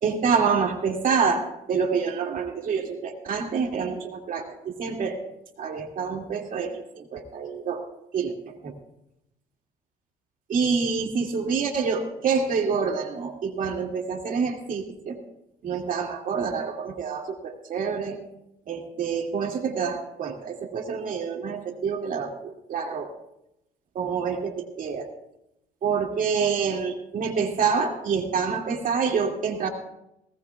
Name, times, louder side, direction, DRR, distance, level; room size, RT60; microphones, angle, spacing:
voice 1, 0.0-5.2 5.6-7.8 8.1-8.7 10.5-15.2 15.6-18.2 18.7-23.1 23.9-25.1 25.8-29.7, right 5 dB, 55° right, 2 dB, 2.2 m, -27 dB
19.5 x 18.0 x 2.3 m, 0.84 s
cardioid pair, 110°, 17 cm